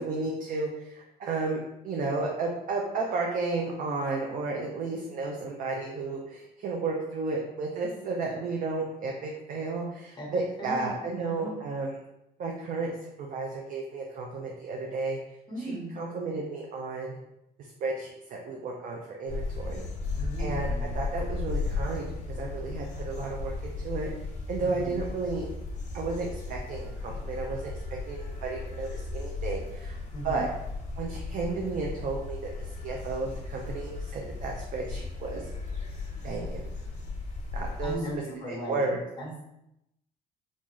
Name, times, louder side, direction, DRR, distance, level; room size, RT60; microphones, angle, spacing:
voice 1, 0.0-12.0 12.4-15.2 15.6-17.2 17.8-19.8 20.4-22.1 22.3-24.1 24.5-25.5 25.9-30.0 30.2-30.5 31.0-35.4 36.2-36.7 37.5-38.0 38.5-39.0, right 3 dB, 55° right, -1 dB, 0.6 m, -33 dB
voice 2, 10.1-11.6 15.5-15.9 20.2-21.0 24.6-25.0 30.1-30.5 37.8-38.8 39.2-39.4, right 1 dB, 25° left, -1 dB, 1.2 m, -37 dB
sound 1, 19.3-37.9, left 3 dB, 45° left, 1.0 m, -35 dB
3.7 x 2.6 x 3.0 m, 0.84 s
cardioid pair, 110°, 17 cm